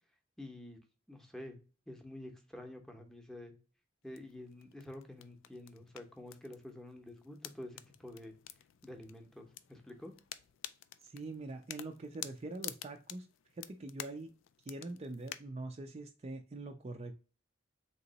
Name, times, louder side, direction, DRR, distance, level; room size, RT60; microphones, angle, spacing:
voice 1, 0.4-0.8 1.1-1.6 1.9-3.5 4.0-8.4 8.8-10.1, left 1 dB, 5° left, 3 dB, 0.7 m, -49 dB
sound 1, 4.0-15.4, left 12 dB, 90° left, 0.4 m, -50 dB
voice 2, 11.0-13.3 13.5-14.3 14.6-17.1, right 2 dB, 35° right, 4 dB, 0.4 m, -44 dB
3.7 x 2.9 x 3.9 m, 0.35 s
head